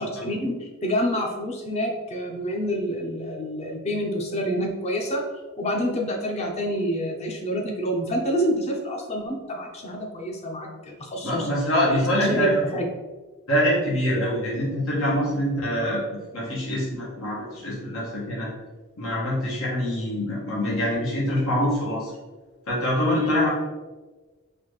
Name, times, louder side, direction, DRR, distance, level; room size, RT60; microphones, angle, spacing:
voice 1, 0.0-5.2 5.6-11.5 11.9-12.8 23.2-23.4, equal, 30° left, 2 dB, 0.6 m, -28 dB
voice 2, 11.2-12.5 13.5-16.0 16.3-18.5 19.0-22.1 22.7-23.5, equal, 85° left, -6 dB, 1.1 m, -24 dB
4.1 x 2.5 x 3.1 m, 1.2 s
head